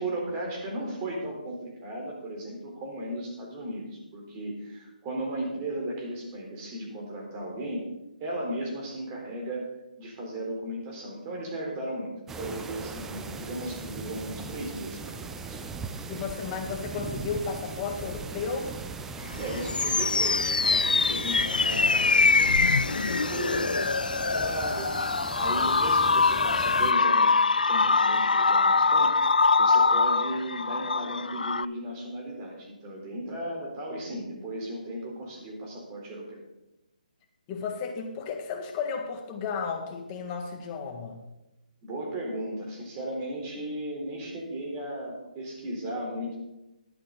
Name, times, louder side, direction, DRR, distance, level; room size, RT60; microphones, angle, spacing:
voice 1, 0.0-7.9 8.2-12.1 12.4-15.6 19.3-25.0 25.4-29.2 29.6-36.4 41.8-46.4, right 1 dB, 25° right, -1 dB, 3.8 m, -36 dB
sound 1, 12.3-26.9, right 4 dB, 10° right, 0.6 m, -39 dB
voice 2, 16.1-18.7 37.5-41.2, left 5 dB, 25° left, 2 dB, 1.8 m, -33 dB
sound 2, 19.3-31.7, left 4 dB, 85° left, 0.3 m, -23 dB
12.5 x 11.5 x 4.0 m, 0.95 s
figure-of-eight pair, 145°, 5 cm